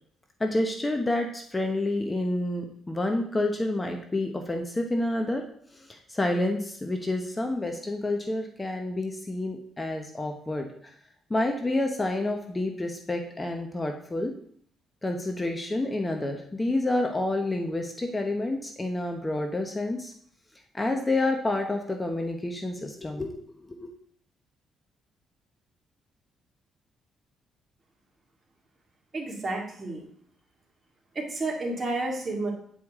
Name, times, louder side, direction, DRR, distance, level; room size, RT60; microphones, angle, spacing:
voice 1, 0.4-5.4 5.7-10.7 11.3-14.3 15.0-20.1 20.7-23.9, left 2 dB, 20° left, 4 dB, 0.9 m, -29 dB
voice 2, 29.1-30.0 31.1-32.5, right 2 dB, 35° right, -1 dB, 2.3 m, -31 dB
9.0 x 4.9 x 3.6 m, 0.63 s
cardioid pair, 90°, 0 cm